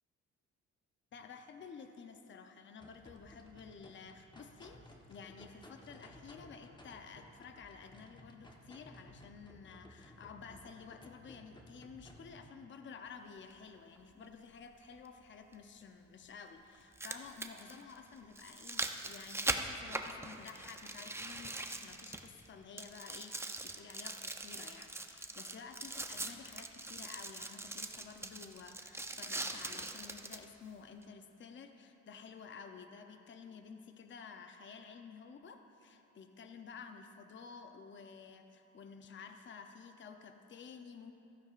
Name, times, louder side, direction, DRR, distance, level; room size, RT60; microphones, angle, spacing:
voice 1, 1.1-41.1, left 5 dB, 40° left, 6 dB, 0.7 m, -52 dB
sound 1, 2.8-12.5, left 1 dB, 15° left, 1.1 m, -57 dB
sound 2, 13.5-13.6 15.5-15.6 16.7-22.5 22.8-30.5 31.0-31.1, right 2 dB, 10° right, 0.6 m, -41 dB
15.0 x 13.0 x 2.5 m, 2.8 s
cardioid pair, 90°, 30 cm